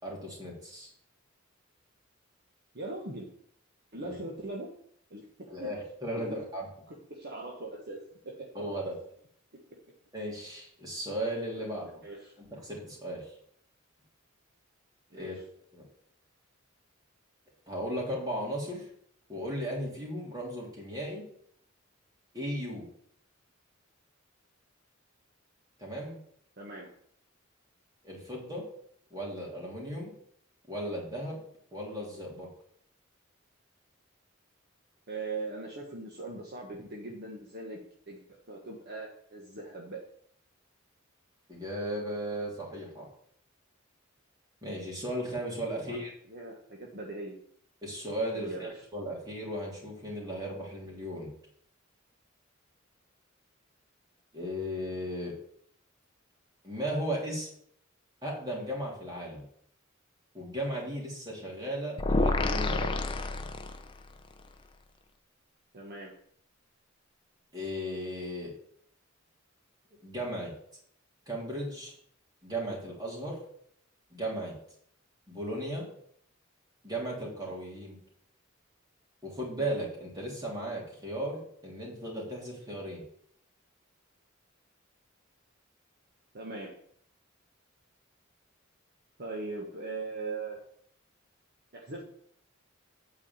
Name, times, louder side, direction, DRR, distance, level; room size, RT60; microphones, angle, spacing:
voice 1, 0.0-0.9 4.0-4.1 5.5-6.7 8.5-8.9 10.1-11.8 12.4-13.3 15.1-15.4 15.7-15.8 17.7-18.9 19.3-21.2 22.3-22.8 25.8-26.2 28.0-28.6 29.1-30.1 30.7-31.4 31.7-32.5 41.5-43.1 44.6-46.1 47.8-51.3 54.3-55.3 56.6-57.5 58.2-59.5 60.3-62.9 67.5-68.5 70.0-70.5 71.3-71.9 72.4-73.4 74.1-74.5 75.3-75.9 76.8-78.0 79.2-83.0, equal, 20° right, -3 dB, 3.3 m, -36 dB
voice 2, 2.7-3.3 3.9-4.7 5.1-5.7 6.1-6.4 6.9-8.0 8.2-8.5 9.5-9.8 11.5-12.3 15.1-15.4 26.6-26.9 35.1-37.8 38.1-40.0 45.8-46.0 46.3-47.3 48.3-48.7 65.7-66.1 86.3-86.7 89.2-90.6 91.7-92.0, right 3 dB, 50° right, -1 dB, 1.4 m, -40 dB
sound 1, 62.0-64.1, left 2 dB, 25° left, 0.6 m, -28 dB
8.7 x 4.8 x 7.2 m, 0.65 s
head